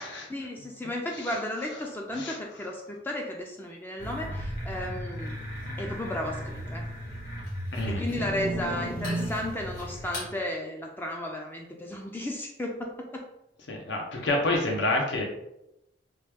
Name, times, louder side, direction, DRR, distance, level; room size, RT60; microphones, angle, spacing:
voice 1, 0.3-5.4 5.8-6.9 7.9-13.2, left 1 dB, 10° left, 0 dB, 0.3 m, -34 dB
sound 1, 4.0-10.3, equal, 50° left, 1.3 m, -34 dB
voice 2, 7.7-8.1 13.7-15.2, left 2 dB, 80° left, 1 dB, 0.8 m, -28 dB
3.0 x 2.2 x 3.3 m, 0.84 s
head